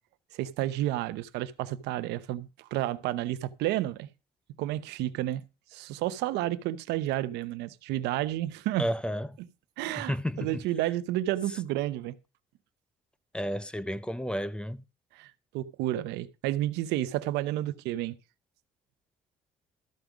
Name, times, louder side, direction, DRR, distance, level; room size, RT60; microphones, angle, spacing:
voice 1, 0.3-4.1 4.6-5.4 5.7-8.9 9.8-12.2 15.1-18.1, right 14 dB, 90° right, 0.7 m, -31 dB
voice 2, 8.8-9.4 10.0-10.6 13.3-14.8, equal, 5° left, 0.5 m, -32 dB
13.0 x 5.2 x 6.0 m
cardioid pair, 110°, 17 cm